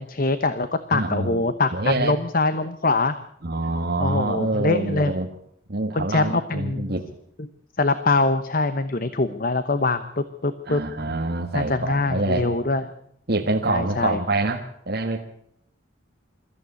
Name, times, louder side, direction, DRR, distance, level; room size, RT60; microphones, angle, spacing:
voice 1, 0.0-3.1 4.0-5.1 5.9-6.9 7.4-7.5 7.8-10.8 11.5-12.8 13.7-14.2, left 3 dB, 45° left, 12 dB, 0.9 m, -23 dB
voice 2, 0.9-1.4 1.7-2.1 3.4-5.3 5.7-7.1 10.6-12.5 13.3-15.2, right 2 dB, 55° right, 1 dB, 1.6 m, -26 dB
23.0 x 14.0 x 8.3 m, 0.71 s
head